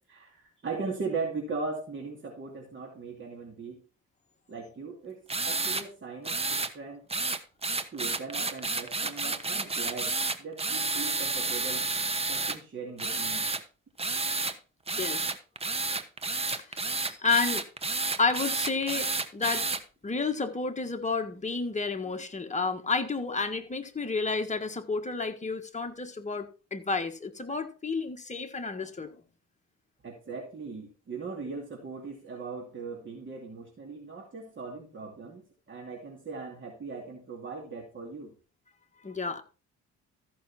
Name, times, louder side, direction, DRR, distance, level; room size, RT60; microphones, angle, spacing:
voice 1, 0.1-3.8 4.5-7.0 7.9-11.9 12.3-13.5 30.0-38.3, right 4 dB, 40° right, 2.7 m, -39 dB
sound 1, 5.3-5.8 6.3-6.7 7.1-12.6 13.0-13.6 14.0-14.5 14.9-19.8, right 3 dB, 20° right, 1.1 m, -30 dB
voice 2, 15.0-15.3 16.5-17.6 18.2-19.7 20.0-29.1 39.0-39.4, left 4 dB, 25° left, 1.6 m, -31 dB
14.5 x 6.0 x 4.3 m
cardioid pair, 90°, 30 cm